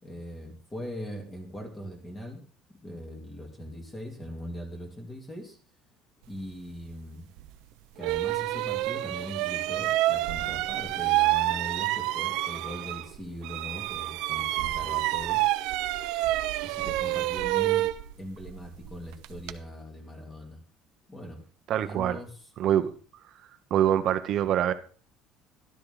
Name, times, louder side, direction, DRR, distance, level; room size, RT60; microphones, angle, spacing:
voice 1, 0.0-2.4 2.8-5.6 6.3-7.3 7.9-15.5 16.6-17.9 18.2-20.6 21.1-21.4 21.8-22.3, equal, 15° left, 2 dB, 3.4 m, -40 dB
sound 1, 7.4-7.5 8.0-13.2 13.4-19.6, right 16 dB, 75° right, 0.9 m, -28 dB
voice 2, 21.7-22.2 22.6-22.9 23.7-24.7, right 10 dB, 50° right, 10 dB, 1.1 m, -24 dB
13.0 x 12.5 x 4.0 m, 0.41 s
cardioid pair, 150°, 0 cm